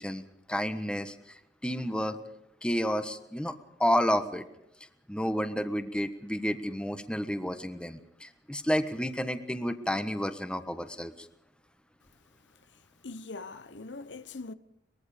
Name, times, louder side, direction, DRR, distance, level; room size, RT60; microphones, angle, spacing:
voice 1, 0.0-2.2 2.6-4.4 5.1-11.3, equal, 5° left, 1.3 m, -31 dB
voice 2, 12.4-14.5, left 3 dB, 75° left, 1.0 m, -43 dB
23.5 x 22.0 x 5.2 m
head